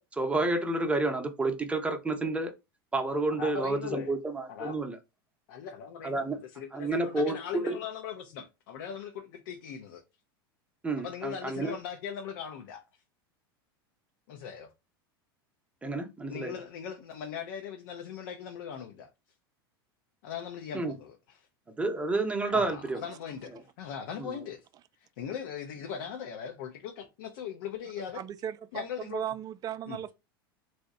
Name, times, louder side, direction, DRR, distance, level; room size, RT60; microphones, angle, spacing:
voice 1, 0.1-2.5 2.9-5.0 6.0-6.4 6.7-7.8 10.8-11.7 15.8-16.6 20.7-20.9 21.8-23.0 24.2-24.4, right 2 dB, 10° right, 0.7 m, -30 dB
voice 2, 3.3-4.1 4.5-4.8 5.5-10.0 11.0-12.8 14.3-14.7 16.3-19.1 20.2-21.4 22.5-24.6 25.2-28.2 28.7-29.2 29.9-30.0, left 8 dB, 65° left, 0.6 m, -39 dB
voice 3, 28.2-30.1, right 10 dB, 30° right, 0.3 m, -36 dB
2.8 x 2.1 x 3.6 m
hypercardioid pair, 90°, 12 cm